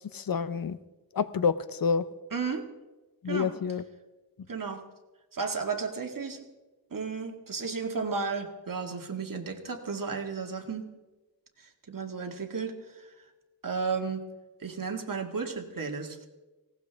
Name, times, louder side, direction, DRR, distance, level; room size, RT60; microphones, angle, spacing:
voice 1, 0.1-0.8 1.1-2.0 3.2-3.8, left 6 dB, 65° left, 15 dB, 0.7 m, -28 dB
voice 2, 2.3-2.7 3.3-3.5 4.5-4.8 5.3-6.5 6.9-10.9 11.6-13.1 13.6-14.2 14.6-16.3, right 5 dB, 55° right, 4 dB, 2.0 m, -33 dB
18.5 x 17.5 x 3.5 m, 1.1 s
wide cardioid pair, 95°, 39 cm